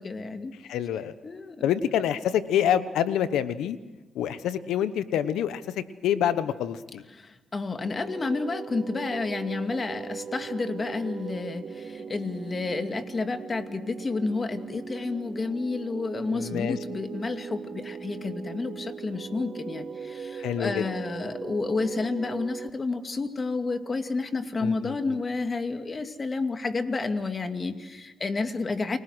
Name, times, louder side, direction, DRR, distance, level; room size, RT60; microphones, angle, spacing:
voice 1, 0.0-0.5 1.2-1.7 7.1-29.0, left 3 dB, 40° left, 7 dB, 2.4 m, -30 dB
voice 2, 0.7-1.1 1.6-3.8 4.1-7.0 16.3-16.8 20.4-20.9 24.6-25.2, left 10 dB, 85° left, 13 dB, 1.1 m, -27 dB
sound 1, 7.7-22.7, right 6 dB, 55° right, 0.8 m, -39 dB
29.5 x 21.0 x 6.3 m, 1.2 s
supercardioid pair, 60°, 0 cm